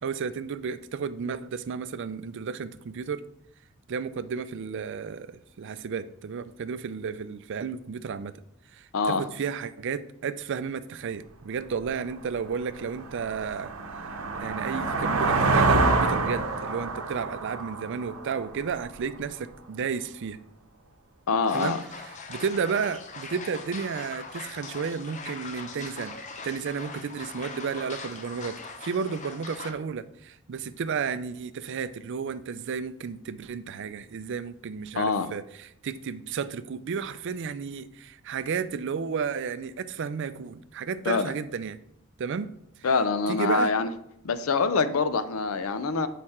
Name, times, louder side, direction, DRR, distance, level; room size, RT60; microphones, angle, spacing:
voice 1, 0.0-3.2 3.9-8.4 8.7-13.7 14.4-20.4 21.5-26.1 26.4-41.8 42.2-42.5 43.3-43.7, right 6 dB, 60° right, 0.4 m, -32 dB
voice 2, 8.9-9.3 21.3-21.8 35.0-35.3 41.1-41.3 42.8-43.9 44.2-46.1, left 4 dB, 80° left, 0.6 m, -25 dB
sound 1, 11.9-12.0 12.5-19.0, right 3 dB, 90° right, 0.8 m, -27 dB
sound 2, 21.5-29.7, left 4 dB, 35° left, 0.7 m, -41 dB
6.4 x 5.0 x 4.3 m
head